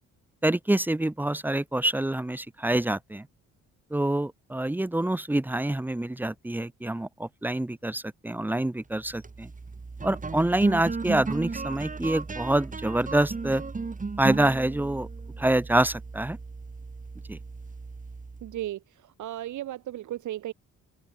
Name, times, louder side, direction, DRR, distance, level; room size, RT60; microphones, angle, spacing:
voice 1, 0.4-3.3 3.9-9.5 10.0-13.6 14.2-15.1 15.4-16.4 17.3-17.4, right 1 dB, 5° right, 0.6 m, -26 dB
sound 1, 9.0-18.6, right 4 dB, 25° right, 4.6 m, -35 dB
voice 2, 18.4-20.5, right 13 dB, 75° right, 1.9 m, -35 dB
open air
cardioid pair, 90°, 30 cm